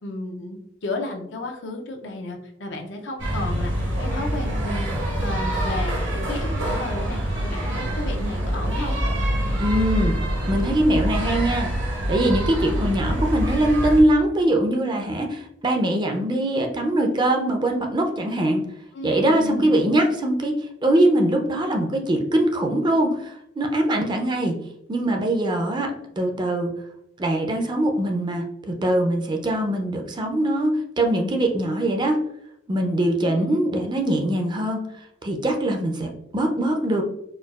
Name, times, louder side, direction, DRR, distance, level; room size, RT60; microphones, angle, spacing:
voice 1, 0.0-4.9 5.2-8.9 18.9-19.7 33.2-33.6, left 2 dB, 80° left, 3 dB, 0.6 m, -33 dB
sound 1, 3.2-14.0, equal, 85° right, 1.3 m, -25 dB
voice 2, 9.6-10.2 10.5-11.7 12.1-18.7 19.0-24.6 24.9-26.7 27.2-32.2 32.7-34.8 35.2-37.0, right 1 dB, 25° right, 3 dB, 0.4 m, -22 dB
4.4 x 2.3 x 2.3 m, 0.79 s
head